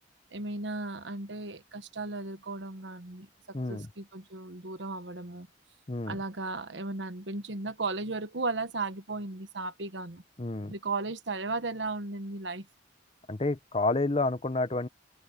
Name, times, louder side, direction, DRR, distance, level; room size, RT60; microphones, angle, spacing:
voice 1, 0.3-5.5 6.1-10.2 10.7-12.7, right 3 dB, 75° right, 1.3 m, -35 dB
voice 2, 3.5-3.9 5.9-6.2 10.4-10.7 13.3-14.9, left 2 dB, 30° left, 1.0 m, -29 dB
open air
head